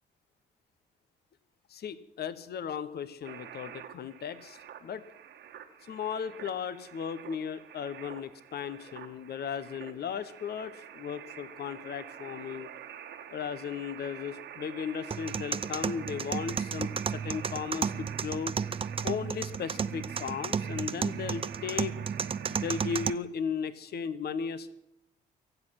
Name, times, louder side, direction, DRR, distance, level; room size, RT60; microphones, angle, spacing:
voice 1, 1.7-5.0 5.8-12.7 13.3-18.5 19.0-22.0 22.5-24.7, left 7 dB, 50° left, 14 dB, 1.1 m, -36 dB
sound 1, 3.2-23.1, right 9 dB, 60° right, 1.6 m, -47 dB
sound 2, 15.1-23.1, right 6 dB, 25° right, 0.6 m, -33 dB
24.0 x 8.0 x 6.0 m, 0.80 s
hypercardioid pair, 50°, 21 cm